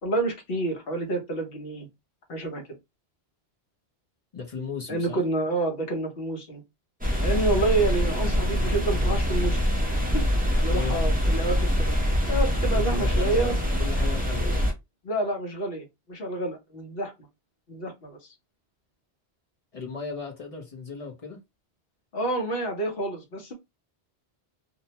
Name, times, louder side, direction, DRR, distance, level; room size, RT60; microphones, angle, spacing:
voice 1, 0.0-1.9 2.3-2.8 4.9-6.6 7.2-9.6 10.1-10.2 10.5-11.9 12.3-13.6 14.5-14.6 15.0-17.1 17.7-18.3 22.1-23.5, right 2 dB, 60° left, 1.1 m, -28 dB
voice 2, 4.3-5.2 10.7-11.0 12.7-14.7 19.7-21.4, left 5 dB, 40° left, 0.7 m, -36 dB
sound 1, 7.0-14.7, equal, 10° right, 0.5 m, -24 dB
2.7 x 2.1 x 2.8 m
omnidirectional pair, 1.1 m